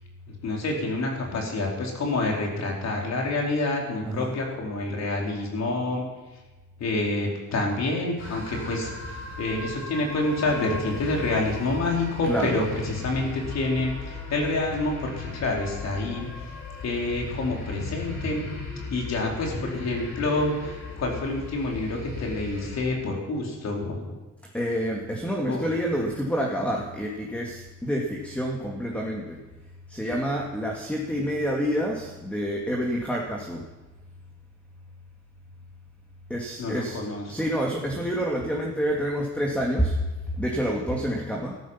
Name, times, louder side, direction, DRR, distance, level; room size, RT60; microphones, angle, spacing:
voice 1, 0.3-6.0 6.8-16.3 16.8-18.4 18.9-24.2 25.4-25.7 36.6-37.2, left 2 dB, 60° left, -1 dB, 4.4 m, -28 dB
sound 1, 8.2-22.8, left 3 dB, 85° left, 6.4 m, -37 dB
voice 2, 12.3-12.6 24.5-29.4 29.9-33.6 36.3-37.0 37.3-40.1 40.4-41.5, equal, 5° left, -1 dB, 2.2 m, -28 dB
13.5 x 13.5 x 5.9 m, 1.1 s
cardioid pair, 90°, 30 cm